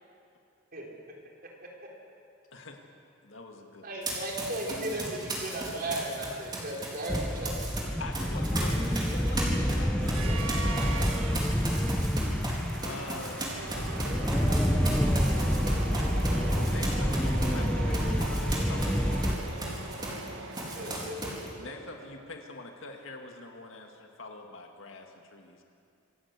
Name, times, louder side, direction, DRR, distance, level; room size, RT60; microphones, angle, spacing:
voice 1, 2.5-2.8 3.2-3.9 8.0-9.0 12.8-13.6 16.5-19.7 21.6-25.6, left 2 dB, 75° left, 3 dB, 2.0 m, -44 dB
voice 2, 3.8-7.7 20.7-21.3 21.6-21.7, right 1 dB, 50° right, -1 dB, 4.2 m, -36 dB
Run, 4.0-7.8 8.1-20.3 20.5-21.5, right 1 dB, 20° right, 4.2 m, -36 dB
sound 1, 6.9-21.1, right 3 dB, 75° right, 2.2 m, -41 dB
sound 2, 7.1-19.4, equal, 5° left, 1.1 m, -28 dB
voice 3, 8.3-11.2 20.8-21.4, left 2 dB, 45° left, -1 dB, 4.9 m, -45 dB
26.5 x 15.0 x 8.3 m, 2.6 s
head